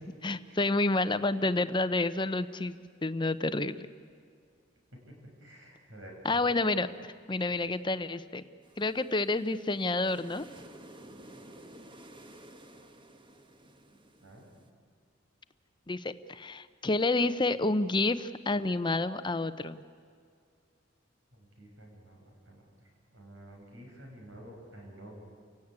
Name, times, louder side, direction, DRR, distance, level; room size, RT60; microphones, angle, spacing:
voice 1, 0.2-2.7 3.0-3.9 6.2-6.9 7.3-8.4 8.8-10.4 15.9-19.8, left 2 dB, 25° left, 12 dB, 0.8 m, -29 dB
voice 2, 5.1-6.2 14.2-14.5 21.3-22.7 23.1-25.2, right 1 dB, 80° right, 0 dB, 7.6 m, -50 dB
sound 1, 8.6-14.7, right 1 dB, 25° right, 1.3 m, -53 dB
29.5 x 16.5 x 9.7 m, 2.2 s
head